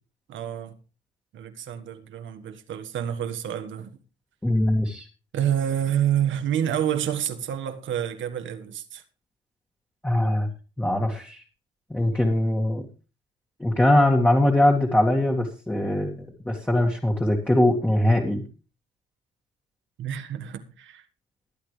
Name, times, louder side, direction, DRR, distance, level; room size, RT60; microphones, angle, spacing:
voice 1, 0.3-0.8 1.3-4.0 5.3-9.0 20.0-21.0, right 10 dB, 75° right, 1.6 m, -28 dB
voice 2, 4.4-5.1 10.0-10.5 10.8-11.4 11.9-12.9 13.6-18.4, left 1 dB, 10° left, 2.1 m, -22 dB
21.0 x 8.6 x 3.3 m
cardioid pair, 90°, 20 cm